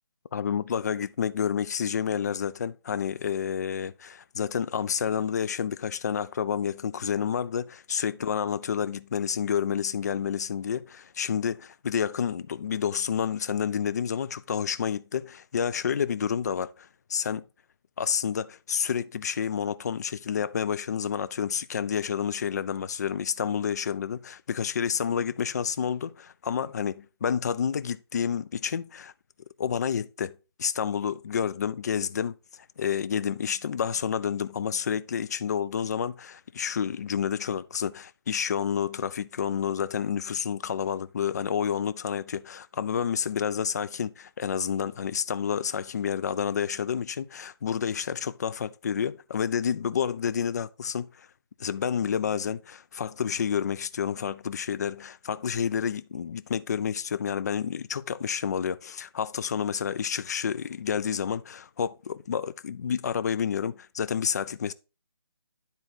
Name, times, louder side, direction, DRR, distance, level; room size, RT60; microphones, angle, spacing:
voice 1, 0.3-17.4 18.0-29.1 29.6-30.3 30.6-51.3 51.6-64.7, left 7 dB, 40° left, 0.4 m, -29 dB
10.0 x 4.0 x 4.1 m
figure-of-eight pair, 155°, 13 cm